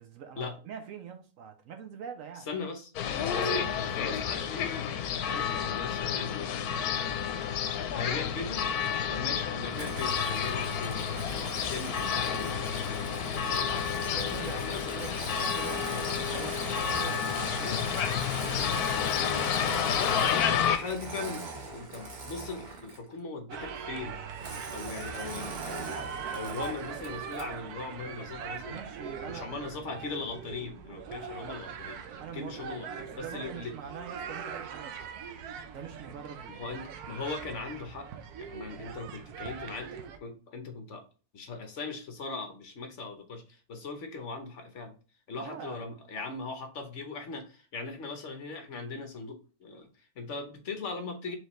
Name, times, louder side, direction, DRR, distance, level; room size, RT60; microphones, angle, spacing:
voice 1, 0.0-2.6 8.0-8.2 13.3-13.6 13.9-19.0 28.6-29.5 32.2-35.1 35.7-36.6 45.4-45.8, right 7 dB, 65° right, 1.0 m, -45 dB
voice 2, 2.5-2.9 3.3-4.7 5.3-6.6 7.9-8.6 9.1-11.0 11.5-12.7 13.4-13.9 14.6-14.9 17.6-17.9 19.9-24.2 24.7-26.0 26.3-28.8 29.2-33.7 36.5-38.1 38.4-39.9 40.2-41.0 41.3-44.9 45.3-51.4, left 4 dB, 55° left, 1.1 m, -39 dB
sound 1, 2.9-20.8, left 8 dB, 80° left, 1.1 m, -30 dB
Engine starting, 9.7-23.1 24.4-27.6, right 3 dB, 40° right, 0.8 m, -40 dB
sound 2, 23.5-40.2, right 6 dB, 90° right, 1.2 m, -41 dB
4.6 x 3.3 x 3.0 m
omnidirectional pair, 1.6 m